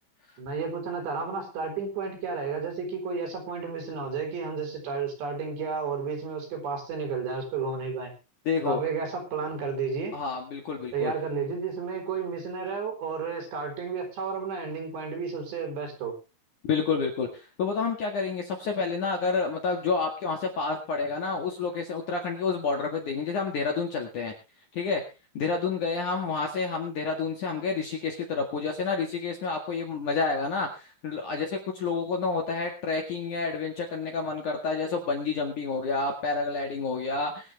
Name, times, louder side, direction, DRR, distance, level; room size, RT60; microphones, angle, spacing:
voice 1, 0.4-8.1 8.6-10.2 10.9-16.1, right 5 dB, 60° right, 3 dB, 6.3 m, -32 dB
voice 2, 8.5-8.8 10.1-11.1 16.6-24.3 24.7-25.0 25.3-37.5, left 4 dB, 50° left, 2 dB, 2.7 m, -29 dB
24.0 x 8.9 x 3.4 m, 0.30 s
omnidirectional pair, 5.6 m